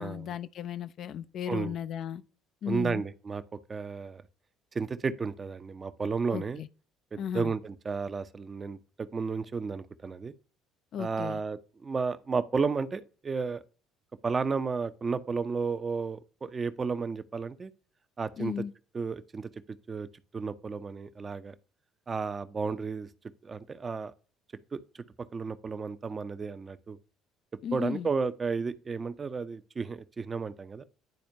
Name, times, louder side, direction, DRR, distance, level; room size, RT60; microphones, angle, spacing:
voice 1, 0.0-2.2 2.6-3.0 6.3-6.7 7.2-7.5 10.9-11.4 18.4-18.7 27.6-28.1, left 9 dB, 50° left, 0.4 m, -35 dB
voice 2, 2.7-3.4 3.7-4.2 4.7-6.6 7.1-10.3 11.0-13.6 14.2-17.7 18.2-18.5 18.9-19.5 19.9-20.1 20.3-21.5 22.1-23.1 23.4-24.1 24.7-25.0 25.3-27.0 27.7-30.9, right 5 dB, 30° right, 0.6 m, -33 dB
10.5 x 4.2 x 2.7 m
figure-of-eight pair, 55°, 0 cm